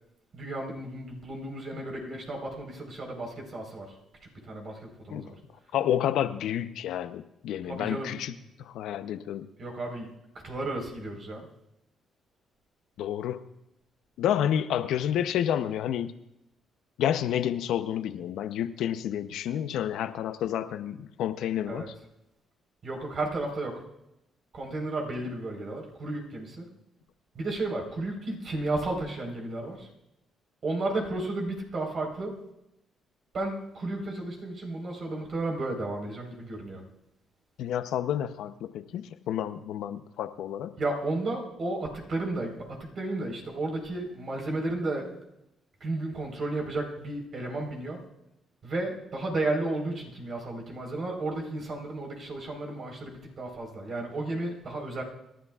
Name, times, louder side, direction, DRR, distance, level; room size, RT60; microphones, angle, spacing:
voice 1, 0.3-3.9 4.2-5.4 7.7-8.2 9.6-10.1 10.4-11.4 21.7-21.9 22.8-23.8 24.5-26.7 27.3-29.9 30.6-32.4 33.3-36.8 40.8-45.1 45.8-48.0 48.6-55.0, right 2 dB, 50° right, 1 dB, 4.2 m, -33 dB
voice 2, 5.7-8.3 8.6-9.5 13.0-13.4 14.2-16.1 17.0-21.9 37.6-40.7, left 10 dB, 85° left, 10 dB, 0.7 m, -30 dB
27.0 x 12.5 x 2.4 m, 0.87 s
cardioid pair, 90°, 0 cm